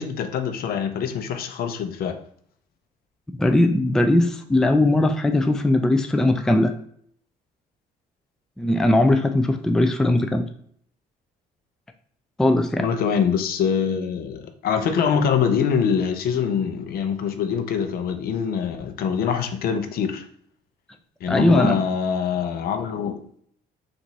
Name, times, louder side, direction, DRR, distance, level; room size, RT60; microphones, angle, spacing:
voice 1, 0.0-2.2 12.8-20.3 21.2-23.4, left 7 dB, 60° left, 0.6 m, -24 dB
voice 2, 3.4-6.7 8.6-10.4 12.4-12.9 21.3-21.8, left 1 dB, 5° left, 0.3 m, -19 dB
3.9 x 2.6 x 4.5 m
cardioid pair, 110°, 17 cm